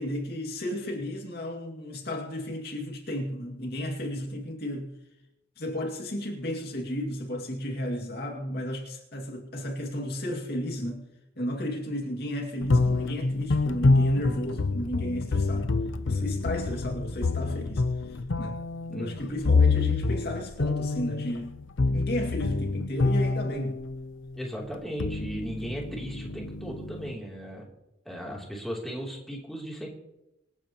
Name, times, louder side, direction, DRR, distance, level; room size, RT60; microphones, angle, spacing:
voice 1, 0.0-4.9 5.6-11.0 11.4-15.7 16.1-18.6 18.9-21.6 21.9-23.8 24.6-24.7, left 1 dB, 55° left, 2.3 m, -33 dB
sound 1, 12.6-24.1 24.7-27.1, left 3 dB, 80° left, 0.7 m, -27 dB
voice 2, 18.9-19.2 24.3-27.7 28.0-29.9, equal, ahead, 3.0 m, -36 dB
26.5 x 9.2 x 3.0 m
head